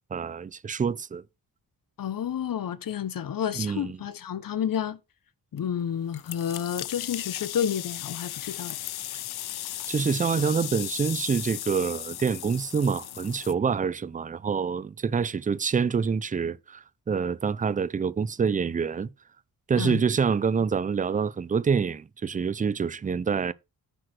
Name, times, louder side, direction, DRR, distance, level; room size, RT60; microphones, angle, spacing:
voice 1, 0.1-1.2 3.6-4.0 9.9-19.1 19.7-23.5, right 6 dB, 20° right, 0.4 m, -26 dB
voice 2, 2.0-5.0 5.5-8.8 19.8-20.0, left 9 dB, 60° left, 0.9 m, -30 dB
sound 1, 6.1-13.5, left 14 dB, 80° left, 0.6 m, -36 dB
10.0 x 4.7 x 6.1 m
wide cardioid pair, 135°, 38 cm